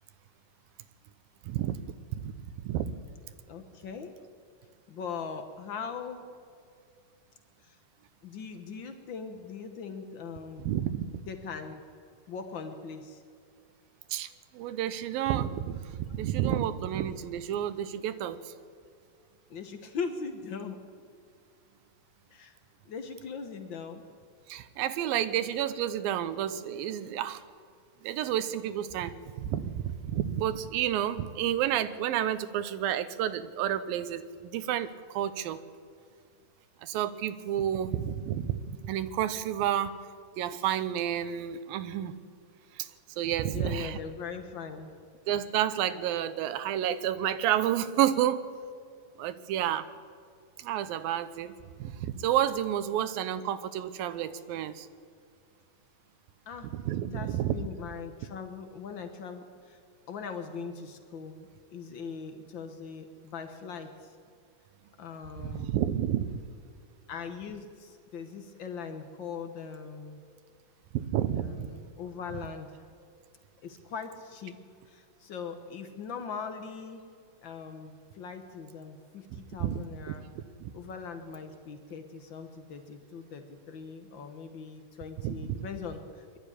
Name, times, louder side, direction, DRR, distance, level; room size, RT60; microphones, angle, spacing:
voice 1, 1.5-1.8 2.1-2.3 2.6-2.9 10.7-11.1 14.1-18.5 24.5-27.4 28.0-35.6 36.8-39.9 40.4-42.1 42.8-42.9 43.2-44.0 45.3-48.5 49.2-49.9 50.6-51.5 51.8-54.9 56.7-57.7 65.4-66.4 70.9-71.7 79.6-79.8 80.1-80.7 85.2-85.4, right 11 dB, 90° right, 12 dB, 2.6 m, -30 dB
voice 2, 3.5-4.1 4.9-6.3 7.6-7.8 8.2-10.7 11.3-11.8 12.3-13.2 19.5-20.8 22.3-22.6 22.8-24.0 43.5-45.0 56.5-56.7 57.1-59.8 60.1-64.2 65.0-65.8 67.1-70.2 71.3-72.8 73.6-74.6 74.9-77.0 77.4-80.2 80.7-86.4, left 5 dB, 80° left, 6 dB, 1.0 m, -40 dB
22.5 x 12.0 x 9.9 m, 2.3 s
omnidirectional pair, 4.0 m